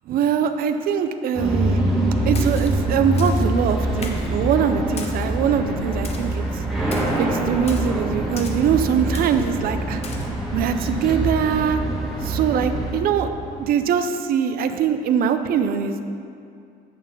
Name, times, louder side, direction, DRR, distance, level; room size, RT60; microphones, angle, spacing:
voice 1, 0.1-1.8 2.3-6.5 7.2-10.0 10.5-11.8 12.2-13.3 13.6-16.0, right 7 dB, 60° right, 8 dB, 0.5 m, -22 dB
sound 1, 1.3-13.0, right 2 dB, ahead, 1.2 m, -24 dB
Splash splatter, 2.3-2.8 3.2-3.5 4.0-4.3 5.0-5.3 6.0-6.4 6.9-7.2 7.7-7.9 8.4-8.7 9.1-9.5 10.0-10.3, left 4 dB, 35° left, 0.8 m, -38 dB
sound 2, 8.1-13.7, left 2 dB, 75° left, 1.2 m, -40 dB
8.4 x 3.7 x 5.4 m, 2.4 s
cardioid pair, 110°, 17 cm